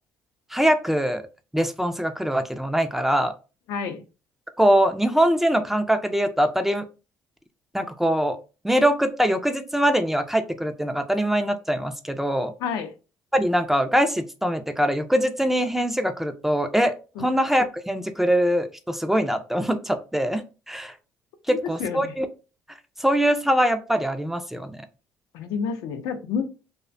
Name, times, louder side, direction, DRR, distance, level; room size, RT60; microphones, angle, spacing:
voice 1, 0.5-1.2 1.5-3.3 4.6-6.9 7.7-8.4 8.6-12.5 13.3-20.9 21.5-22.3 23.0-24.8, equal, 5° right, 0.3 m, -23 dB
voice 2, 3.7-4.0 12.6-12.9 17.2-17.3 21.5-22.1 25.3-26.5, left 6 dB, 80° left, 0.4 m, -29 dB
2.4 x 2.1 x 2.4 m
supercardioid pair, 85°, 6 cm